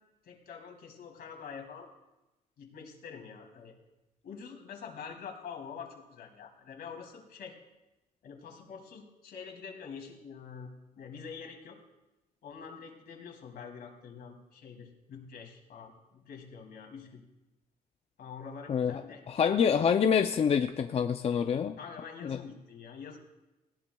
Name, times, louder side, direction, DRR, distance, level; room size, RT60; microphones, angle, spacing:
voice 1, 0.2-1.9 2.6-3.7 4.2-7.6 8.2-10.7 11.0-11.8 12.4-17.2 18.2-19.8 21.8-23.2, left 6 dB, 70° left, 2 dB, 2.6 m, -46 dB
voice 2, 18.7-19.0 19.3-21.8 22.2-22.4, left 7 dB, 40° left, 7 dB, 0.5 m, -26 dB
18.5 x 15.0 x 2.3 m, 1.0 s
cardioid pair, 110°, 17 cm